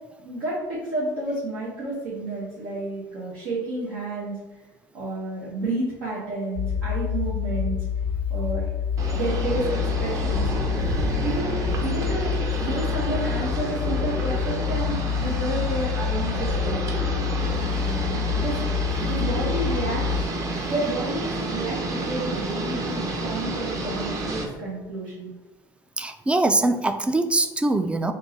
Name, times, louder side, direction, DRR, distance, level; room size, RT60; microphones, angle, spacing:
voice 1, 0.2-4.4 4.9-7.8 8.3-8.7 9.1-10.5 10.9-16.8 17.8-18.6 19.0-20.1 20.6-25.3, right 2 dB, 85° right, -8 dB, 1.1 m, -30 dB
sound 1, 6.6-20.2, left 8 dB, 70° left, 0.4 m, -27 dB
sound 2, 9.0-24.4, right 2 dB, 40° right, 0.8 m, -30 dB
voice 2, 26.0-28.1, right 2 dB, 15° right, 8 dB, 0.3 m, -22 dB
3.7 x 2.6 x 4.0 m, 1.1 s
supercardioid pair, 100°, 9 cm